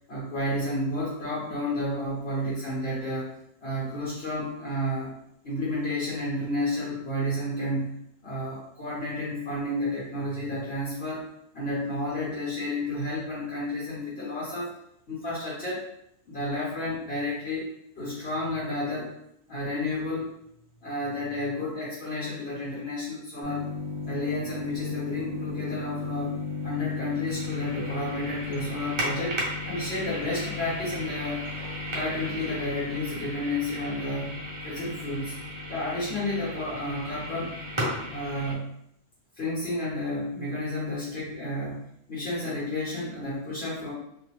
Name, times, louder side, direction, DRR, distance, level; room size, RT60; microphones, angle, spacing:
voice 1, 0.1-3.3 3.6-5.1 5.4-7.9 8.2-11.3 11.5-14.7 15.1-15.8 16.3-17.7 17.9-19.1 19.5-20.3 20.8-23.7 24.0-26.3 26.6-31.4 31.9-34.3 34.6-35.3 35.7-37.5 38.1-38.7 39.4-41.8 42.1-43.9, left 1 dB, 55° left, -8 dB, 1.4 m, -31 dB
sound 1, 23.4-38.5, left 2 dB, 35° right, 0.5 m, -34 dB
2.7 x 2.4 x 3.0 m, 0.74 s
omnidirectional pair, 1.3 m